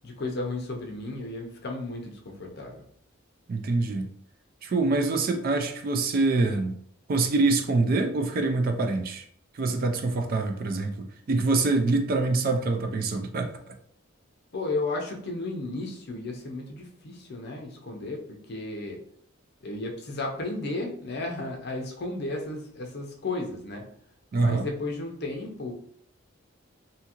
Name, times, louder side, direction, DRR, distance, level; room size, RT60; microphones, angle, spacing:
voice 1, 0.0-2.8 14.5-19.0 19.6-23.9 24.4-25.7, left 2 dB, 50° left, 0.5 m, -34 dB
voice 2, 3.5-4.1 4.6-6.7 7.1-9.2 9.5-13.5 24.3-24.7, right 3 dB, 45° right, 0.3 m, -25 dB
2.8 x 2.4 x 2.8 m
head